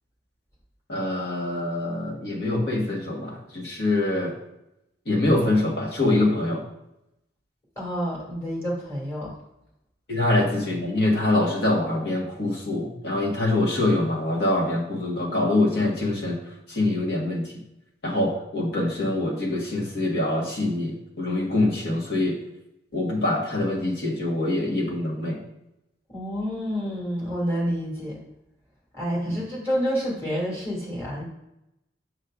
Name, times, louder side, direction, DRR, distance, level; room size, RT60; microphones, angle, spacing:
voice 1, 0.9-4.3 5.0-6.6 10.1-17.5 18.0-22.4 22.9-25.4 29.3-29.4, left 2 dB, 65° left, -2 dB, 1.5 m, -24 dB
voice 2, 7.8-9.3 26.1-28.2 28.9-31.2, equal, 15° left, -7 dB, 2.4 m, -28 dB
6.5 x 6.4 x 2.5 m, 0.85 s
head